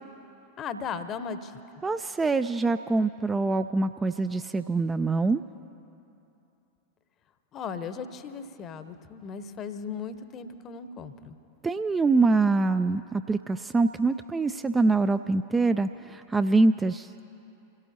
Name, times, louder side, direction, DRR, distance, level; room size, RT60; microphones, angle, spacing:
voice 1, 0.6-1.5 7.5-11.4, left 6 dB, 30° left, 11 dB, 0.9 m, -37 dB
voice 2, 1.8-5.4 11.6-17.1, right 3 dB, 15° right, 9 dB, 0.3 m, -24 dB
26.5 x 16.5 x 2.8 m, 2.8 s
figure-of-eight pair, 90°, 0 cm